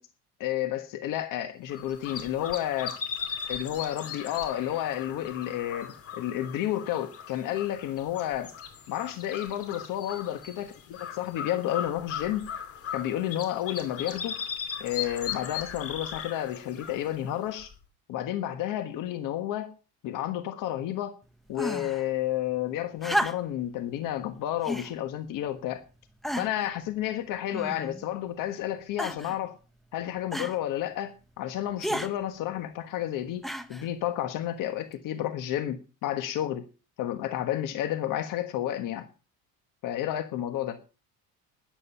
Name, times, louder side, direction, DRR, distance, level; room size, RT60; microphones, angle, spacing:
voice 1, 0.4-3.0 3.5-8.5 8.9-12.4 12.9-14.4 14.8-17.7 18.1-19.7 20.0-21.2 21.5-25.8 26.4-29.6 29.9-33.4 33.7-36.6 37.0-39.1 39.8-40.8, left 12 dB, 60° left, 1.4 m, -31 dB
sound 1, 1.7-17.8, left 7 dB, 40° left, 2.7 m, -38 dB
sound 2, 21.6-22.0 23.0-23.7 24.6-24.9 25.7-25.8 26.2-26.7 27.5-28.1 29.0-29.4 30.3-30.6 31.8-32.1 33.4-33.9 34.9-35.0, equal, ahead, 0.8 m, -32 dB
13.0 x 10.5 x 5.6 m
cardioid pair, 165°, 36 cm